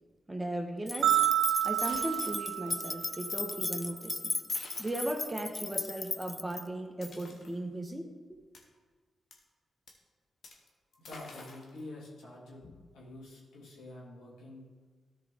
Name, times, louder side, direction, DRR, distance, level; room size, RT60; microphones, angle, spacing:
voice 1, 0.3-1.2 1.6-4.3 4.8-8.1, right 1 dB, 20° right, 4 dB, 1.4 m, -37 dB
sound 1, 0.9-6.6, left 2 dB, 30° left, 0.3 m, -36 dB
sound 2, 1.0-3.4, right 13 dB, 85° right, 0.3 m, -29 dB
sound 3, 1.8-3.0 4.5-5.3 7.0-7.6 8.5-8.6 9.3-9.4 9.9-10.0 10.4-10.7 10.9-11.8 12.6-13.2, left 3 dB, 65° left, 1.4 m, -50 dB
voice 2, 10.9-12.6 12.9-14.6, left 2 dB, 85° left, -5 dB, 2.4 m, -47 dB
13.0 x 5.0 x 3.7 m, 1.4 s
supercardioid pair, 45°, 0 cm